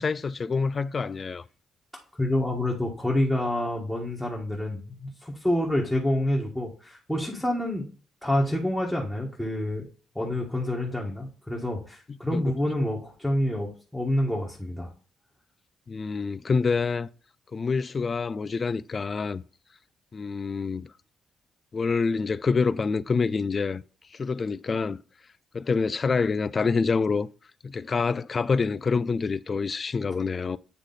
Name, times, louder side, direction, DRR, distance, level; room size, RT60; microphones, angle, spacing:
voice 1, 0.0-1.4 12.3-12.4 15.9-17.1 17.5-19.4 20.1-20.9 21.7-23.8 24.1-25.0 25.5-27.3 27.6-30.6, left 4 dB, 35° left, 0.3 m, -26 dB
voice 2, 2.2-7.9 8.2-9.8 10.1-14.9, left 1 dB, 5° left, 1.5 m, -27 dB
8.4 x 3.2 x 4.0 m
cardioid pair, 90°, 0 cm